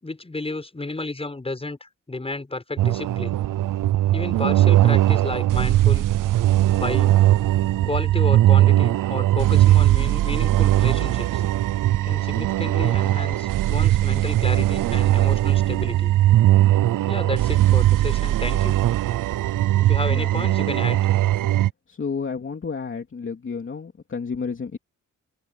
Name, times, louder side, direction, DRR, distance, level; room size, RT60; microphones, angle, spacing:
voice 1, 0.0-3.4 4.1-6.1 6.8-7.2 7.8-11.4 12.0-16.1 17.1-18.7 19.8-21.0, left 2 dB, 20° left, 6.1 m, -32 dB
sound 1, 2.8-21.7, right 14 dB, 80° right, 0.5 m, -19 dB
voice 2, 21.9-24.8, left 5 dB, 40° left, 3.0 m, -31 dB
open air
wide cardioid pair, 140°, 32 cm